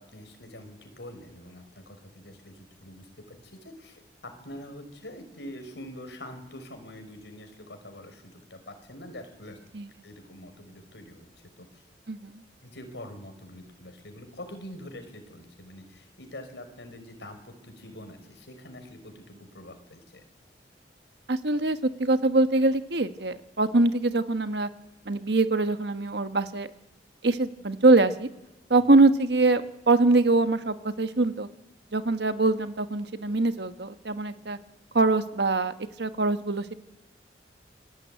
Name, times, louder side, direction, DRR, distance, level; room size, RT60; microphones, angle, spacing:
voice 1, 0.0-9.6 10.0-11.3 11.6-11.8 12.6-20.2 28.8-28.9, left 1 dB, 80° left, 6 dB, 5.5 m, -45 dB
voice 2, 12.1-12.4 21.3-24.7 25.0-26.7 27.2-28.3 28.7-31.5 31.9-34.6 34.9-36.7, right 2 dB, 70° right, 10 dB, 1.3 m, -23 dB
27.0 x 21.5 x 9.2 m, 0.96 s
head